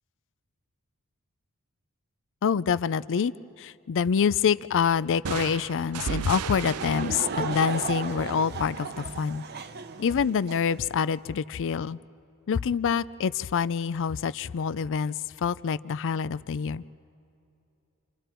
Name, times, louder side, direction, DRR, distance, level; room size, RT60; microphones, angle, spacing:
voice 1, 2.4-3.3 3.6-9.4 10.0-12.0 12.5-16.8, left 6 dB, 60° left, 18 dB, 0.4 m, -26 dB
sound 1, 5.2-8.9, right 7 dB, 85° right, 0.5 m, -35 dB
Laughter / Crowd, 6.6-10.8, right 5 dB, 50° right, 0.8 m, -35 dB
28.5 x 27.5 x 4.5 m, 2.7 s
head